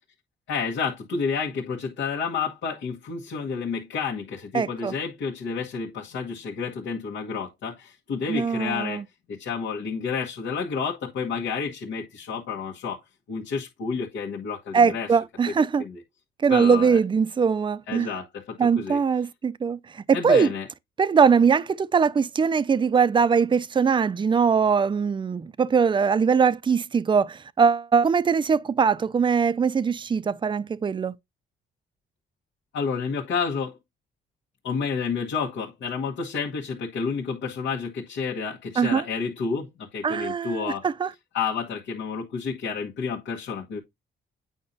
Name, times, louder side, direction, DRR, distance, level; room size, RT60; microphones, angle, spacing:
voice 1, 0.5-9.0 9.3-13.0 13.3-15.2 15.5-15.6 15.8-16.0 16.5-17.0 17.9-19.0 20.1-20.7 32.7-33.8 34.6-40.9 41.3-43.8, left 5 dB, 75° left, 1.4 m, -30 dB
voice 2, 4.5-4.9 8.3-9.0 14.7-15.8 16.4-18.1 18.6-19.8 20.1-20.5 21.0-31.1 38.8-39.0 40.0-41.1, right 6 dB, 25° right, 0.4 m, -21 dB
8.7 x 5.4 x 2.7 m
cardioid pair, 90°, 20 cm